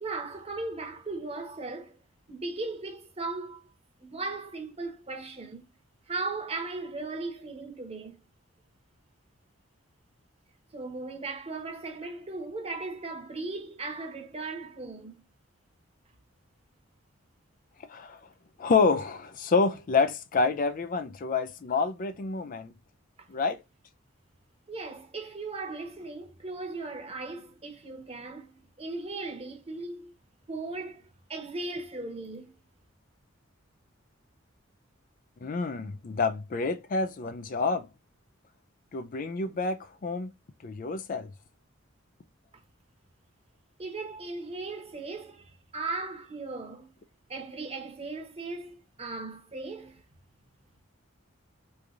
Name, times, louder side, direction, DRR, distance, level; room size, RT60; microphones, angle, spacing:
voice 1, 0.0-2.0 2.3-3.6 4.0-5.6 6.1-8.2 10.7-15.2 23.2-23.3 24.7-30.1 30.5-32.5 43.8-46.9 47.3-50.0, right 3 dB, 30° right, 1.0 m, -37 dB
voice 2, 17.9-18.2 18.6-22.7 23.3-23.6 35.4-37.9 38.9-40.3 40.6-41.3, left 4 dB, 45° left, 0.4 m, -28 dB
3.4 x 3.3 x 2.5 m
head